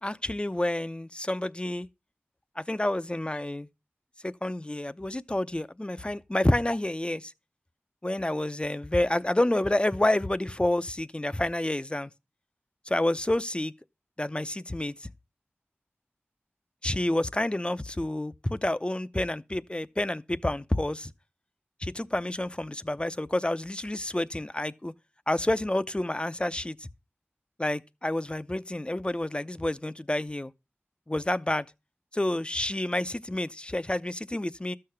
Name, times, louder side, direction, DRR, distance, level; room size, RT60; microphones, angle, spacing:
voice 1, 0.0-1.9 2.6-3.7 4.2-7.3 8.0-12.1 12.9-13.7 14.2-15.1 16.8-21.1 21.8-24.9 25.3-26.9 27.6-30.5 31.1-31.7 32.1-34.7, left 1 dB, 25° left, 0.7 m, -29 dB
13.0 x 6.8 x 5.8 m
wide cardioid pair, 45°, 4 cm